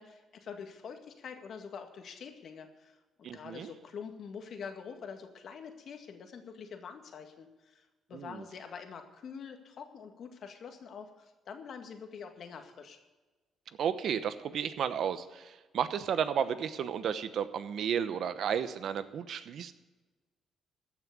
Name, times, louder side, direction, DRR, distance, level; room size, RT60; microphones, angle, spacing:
voice 1, 0.0-13.0, left 6 dB, 60° left, 5 dB, 1.9 m, -46 dB
voice 2, 3.2-3.7 8.1-8.4 13.8-19.7, right 8 dB, 65° right, 12 dB, 0.9 m, -33 dB
14.5 x 6.2 x 9.7 m, 1.2 s
cardioid pair, 90°, 0 cm